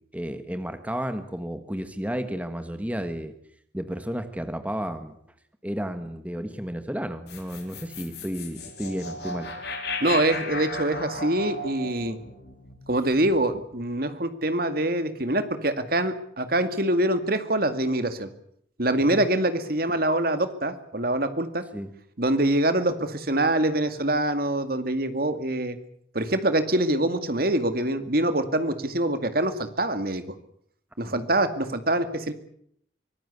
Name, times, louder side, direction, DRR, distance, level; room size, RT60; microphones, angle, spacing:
voice 1, 0.1-3.3 3.7-5.1 5.6-9.5 19.1-19.3 21.7-21.9 31.0-31.3, equal, 10° right, 9 dB, 1.5 m, -32 dB
sound 1, 7.3-13.6, left 2 dB, 60° left, 4.7 m, -35 dB
voice 2, 10.0-12.2 12.9-18.3 18.8-21.6 22.2-25.8 26.1-30.2 31.0-32.3, right 1 dB, 50° right, 10 dB, 2.1 m, -25 dB
24.5 x 18.5 x 8.3 m, 0.67 s
head